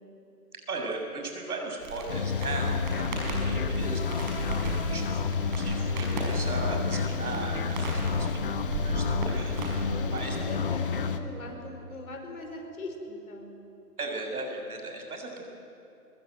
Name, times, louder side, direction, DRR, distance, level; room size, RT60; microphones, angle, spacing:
voice 1, 0.7-8.3 8.5-9.8 10.1-10.6 14.0-15.4, right 3 dB, 65° right, 2 dB, 6.8 m, -37 dB
Crackle, 1.8-10.4, right 2 dB, 30° right, 5.5 m, -35 dB
sound 1, 2.1-11.2, left 5 dB, 35° left, 1.2 m, -30 dB
voice 2, 3.1-3.7 9.8-13.5 15.4-15.5, left 2 dB, 60° left, 3 dB, 5.5 m, -41 dB
23.5 x 21.5 x 9.2 m, 2.9 s
hypercardioid pair, 160°, 47 cm